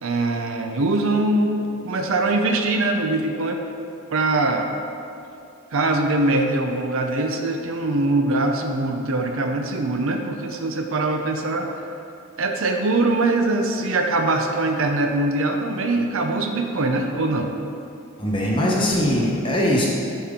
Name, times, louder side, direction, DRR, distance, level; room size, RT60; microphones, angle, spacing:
voice 1, 0.0-3.6 4.1-4.7 5.7-11.7 12.4-17.5, right 2 dB, 65° right, 4 dB, 0.6 m, -22 dB
voice 2, 18.2-19.9, left 1 dB, 20° left, -3 dB, 1.0 m, -21 dB
10.5 x 4.4 x 3.7 m, 2.6 s
head